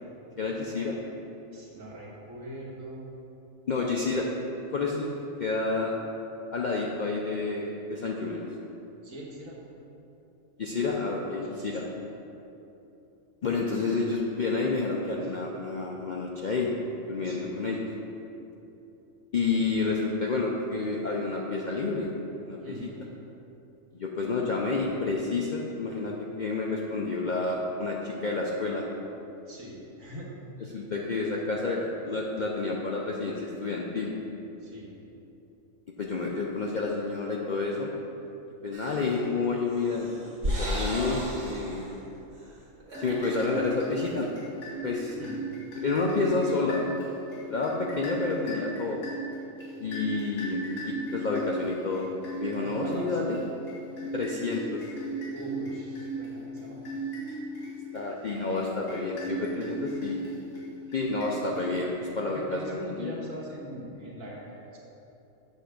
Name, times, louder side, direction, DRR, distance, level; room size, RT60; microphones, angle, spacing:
voice 1, 0.4-1.0 3.7-4.3 4.7-5.1 5.4-5.9 6.5-8.5 10.6-11.8 13.4-16.7 17.1-17.9 19.3-22.1 22.4-22.7 23.9-28.9 30.7-34.2 36.0-37.9 38.6-40.1 40.6-41.9 43.0-44.3 44.8-45.2 45.8-46.8 47.5-49.0 49.8-52.1 52.4-53.4 54.1-54.8 57.9-60.2 60.9-63.1, left 3 dB, 60° left, -2 dB, 0.5 m, -29 dB
voice 2, 1.5-3.0 9.0-9.6 11.4-11.9 15.2-15.3 17.2-17.6 22.6-22.9 29.5-30.3 34.6-34.9 45.1-45.4 51.9-52.1 52.5-53.2 55.3-56.8 62.2-64.8, right 1 dB, 80° right, -5 dB, 1.8 m, -42 dB
sound 1, 38.7-39.2 39.7-41.9 42.3-42.5 42.8-43.5, equal, 60° right, 1.9 m, -34 dB
sound 2, 42.9-62.1, right 2 dB, 85° left, 2.4 m, -37 dB
8.0 x 3.4 x 6.4 m, 2.9 s
omnidirectional pair, 1.4 m